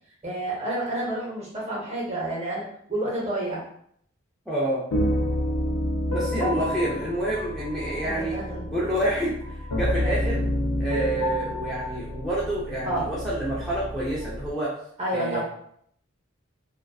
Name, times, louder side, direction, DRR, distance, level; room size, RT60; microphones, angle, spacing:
voice 1, 0.2-3.6 8.0-8.8 12.8-13.0 15.0-15.4, right 1 dB, 30° right, -4 dB, 0.7 m, -29 dB
voice 2, 4.5-4.8 6.1-8.4 8.7-10.4 10.8-14.7 15.1-15.4, right 1 dB, ahead, -9 dB, 0.3 m, -28 dB
sound 1, 4.9-14.5, left 1 dB, 85° left, 0.5 m, -29 dB
2.4 x 2.2 x 2.3 m, 0.68 s
head